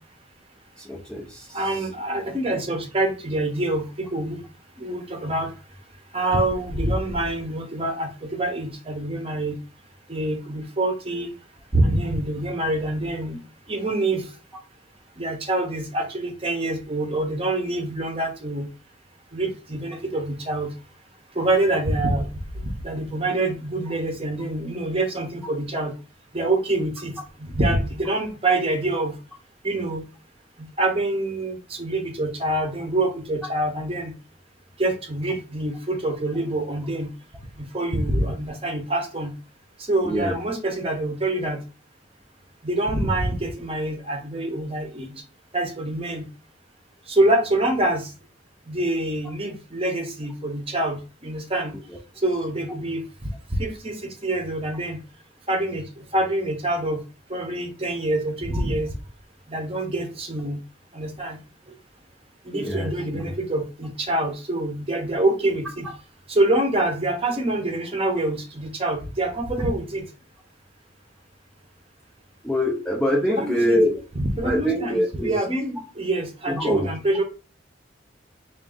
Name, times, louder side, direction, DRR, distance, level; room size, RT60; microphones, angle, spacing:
voice 1, 0.8-1.6 40.1-40.3 51.9-52.0 62.5-63.2 72.4-74.0 74.4-75.4 76.5-76.9, equal, 5° left, -1 dB, 0.4 m, -24 dB
voice 2, 1.5-4.4 4.8-5.5 6.1-9.6 10.1-11.3 11.7-13.4 13.7-14.2 15.2-18.7 19.3-20.7 21.3-22.3 22.5-25.9 26.3-29.1 29.6-30.0 30.8-34.1 34.8-37.1 37.6-39.3 39.9-41.6 42.6-45.1 45.5-46.3 47.1-48.1 48.7-51.7 52.2-53.0 53.5-55.0 55.5-55.9 56.1-57.0 57.3-58.9 59.5-60.6 60.9-61.4 62.5-65.9 66.3-70.1 73.3-73.8 74.1-77.2, right 1 dB, 30° right, 4 dB, 0.8 m, -25 dB
3.6 x 2.5 x 3.7 m, 0.34 s
head